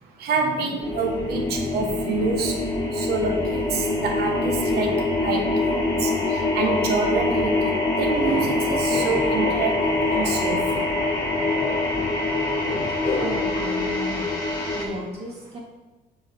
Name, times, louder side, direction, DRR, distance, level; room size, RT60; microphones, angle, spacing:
voice 1, 0.2-2.5 3.0-4.9 5.2-6.1 6.5-9.8 10.1-10.6, right 4 dB, 70° right, 3 dB, 1.2 m, -27 dB
sound 1, 0.8-14.9, left 2 dB, 25° left, 1.7 m, -24 dB
sound 2, 7.9-13.6, left 3 dB, 50° left, 1.5 m, -33 dB
voice 2, 13.2-14.4 14.7-15.6, equal, 35° right, -2 dB, 2.2 m, -34 dB
5.8 x 4.7 x 4.6 m, 1.2 s
cardioid pair, 110°, 17 cm